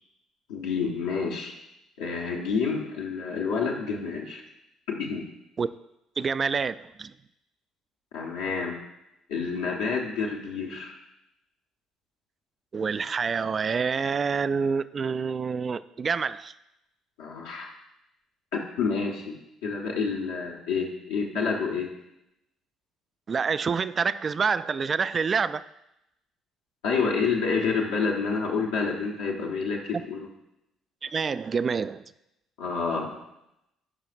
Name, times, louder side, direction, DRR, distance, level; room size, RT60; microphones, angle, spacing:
voice 1, 0.5-1.5 2.0-4.4 4.9-5.2 8.1-8.8 9.3-10.9 17.2-17.7 18.5-19.4 19.6-21.9 26.8-30.2 32.6-33.1, left 5 dB, 70° left, -2 dB, 1.2 m, -28 dB
voice 2, 6.2-7.1 12.7-16.5 23.3-25.6 31.0-32.0, right 5 dB, 35° right, 15 dB, 0.3 m, -27 dB
16.0 x 5.7 x 2.5 m, 0.87 s
figure-of-eight pair, 50°, 0 cm